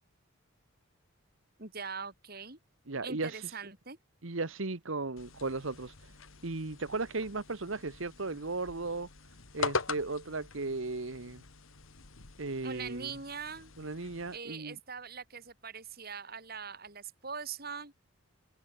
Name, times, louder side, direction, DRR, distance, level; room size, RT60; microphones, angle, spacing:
voice 1, 1.6-2.6 3.0-4.0 12.6-13.7 14.3-17.9, right 5 dB, 45° right, 3.6 m, -42 dB
voice 2, 2.9-3.6 4.2-6.1 6.4-9.1 9.5-11.4 12.4-13.1 13.8-14.8, right 3 dB, 65° right, 1.3 m, -36 dB
sound 1, 5.2-14.4, left 4 dB, 70° left, 2.2 m, -42 dB
head